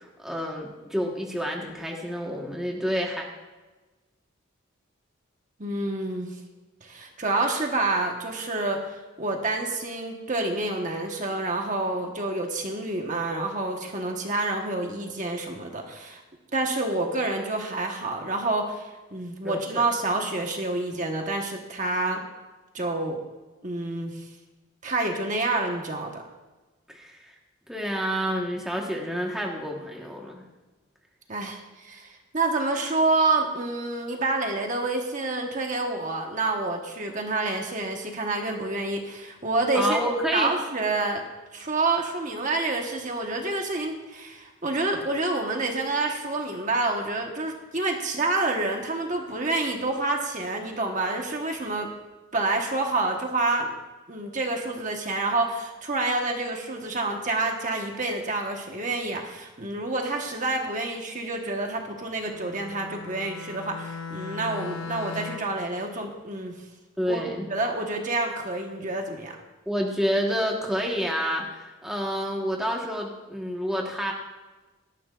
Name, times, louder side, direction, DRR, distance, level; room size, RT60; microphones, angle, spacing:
voice 1, 0.0-3.3 19.4-19.8 26.9-27.3 27.7-30.4 39.7-40.5 67.0-67.5 69.7-74.1, equal, ahead, -1 dB, 1.3 m, -29 dB
voice 2, 5.6-6.3 6.8-16.2 16.5-22.2 22.7-23.2 23.6-24.3 24.8-26.2 31.3-40.0 40.3-51.9 52.3-53.8 54.1-66.5 67.1-69.4, right 2 dB, 35° right, 2 dB, 1.2 m, -28 dB
Bowed string instrument, 62.3-65.7, left 5 dB, 80° left, 0.8 m, -38 dB
18.0 x 13.0 x 2.5 m, 1.2 s
head